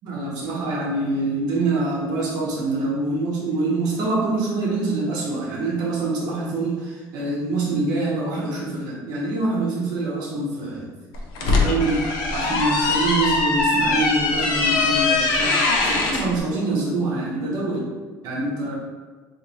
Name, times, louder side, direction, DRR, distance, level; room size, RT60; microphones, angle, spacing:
voice 1, 0.0-10.9 11.4-17.9 18.2-18.8, right 2 dB, 60° right, -4 dB, 0.8 m, -25 dB
sound 1, 11.1-16.3, left 3 dB, 75° left, 0.6 m, -21 dB
3.0 x 2.5 x 4.0 m, 1.4 s
cardioid pair, 170°, 7 cm